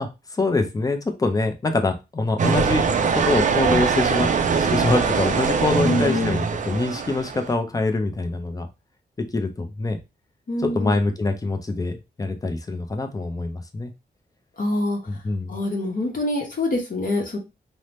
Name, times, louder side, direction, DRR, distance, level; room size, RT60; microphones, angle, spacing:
voice 1, 0.0-2.9 3.1-4.3 4.5-8.7 9.3-10.0 10.6-13.9 15.1-15.6, left 3 dB, 20° left, 5 dB, 0.5 m, -24 dB
sound 1, 2.4-7.5, right 5 dB, 45° right, 0.4 m, -22 dB
voice 2, 5.8-6.4 10.5-11.0 14.6-15.0 15.5-17.4, left 2 dB, 50° left, 0 dB, 0.8 m, -25 dB
2.7 x 2.0 x 3.2 m, 0.26 s
wide cardioid pair, 120°, 17 cm